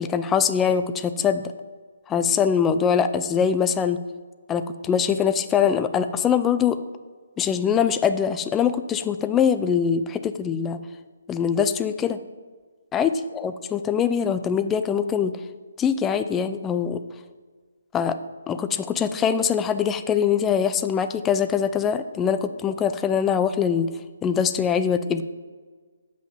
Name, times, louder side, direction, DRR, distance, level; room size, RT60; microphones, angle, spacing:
voice 1, 0.0-1.4 2.1-4.0 4.5-6.8 7.4-10.8 11.3-12.2 12.9-15.4 15.8-17.0 17.9-18.2 18.5-23.9 24.2-25.2, left 7 dB, 15° left, 10 dB, 0.4 m, -23 dB
7.6 x 5.6 x 7.1 m, 1.5 s
figure-of-eight pair, 140°, 0 cm